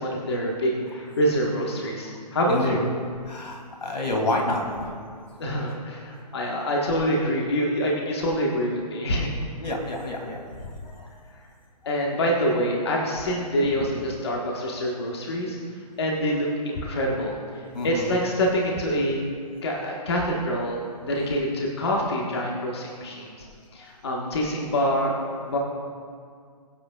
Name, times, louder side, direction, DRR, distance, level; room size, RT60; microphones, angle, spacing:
voice 1, 0.0-2.8 5.4-9.3 11.8-15.6 16.0-19.2 19.6-23.3 23.7-25.6, equal, 40° left, -2 dB, 1.5 m, -26 dB
voice 2, 2.5-2.8 3.3-4.9 9.6-10.4 10.9-11.1 13.8-13.9 17.7-18.0, left 2 dB, 85° left, 1 dB, 2.8 m, -28 dB
21.5 x 7.9 x 2.4 m, 2.1 s
hypercardioid pair, 180°, 21 cm